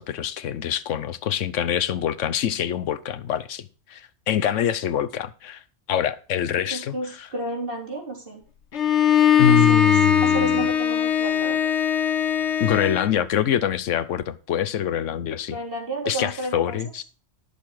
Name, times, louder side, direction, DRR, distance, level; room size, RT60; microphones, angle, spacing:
voice 1, 0.0-5.6 5.9-7.3 9.4-10.7 12.6-15.6 16.1-17.0, left 9 dB, 85° left, 1.1 m, -25 dB
voice 2, 6.7-8.4 9.5-9.9 10.2-11.7 15.5-16.8, right 1 dB, 50° right, 4.0 m, -32 dB
Bowed string instrument, 8.7-13.2, left 8 dB, 70° left, 1.4 m, -20 dB
14.0 x 6.9 x 4.8 m
omnidirectional pair, 1.2 m